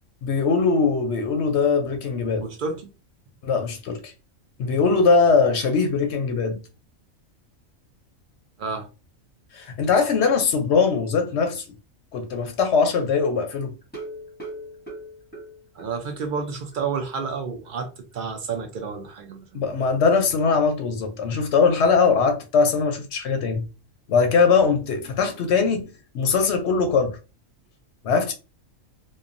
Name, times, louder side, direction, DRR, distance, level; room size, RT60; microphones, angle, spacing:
voice 1, 0.2-2.4 3.4-4.1 4.6-6.6 9.5-11.6 12.1-13.8 19.5-23.7 24.1-27.2 28.0-28.3, left 5 dB, 65° left, 0.8 m, -21 dB
voice 2, 2.4-2.9 4.7-4.8 8.6-8.9 15.7-19.7, right 5 dB, 65° right, 0.5 m, -30 dB
sound 1, 13.8-16.4 16.7-16.8 17.2-17.3 17.7-17.8, right 1 dB, 10° left, 0.7 m, -39 dB
2.9 x 2.1 x 2.5 m
omnidirectional pair, 1.4 m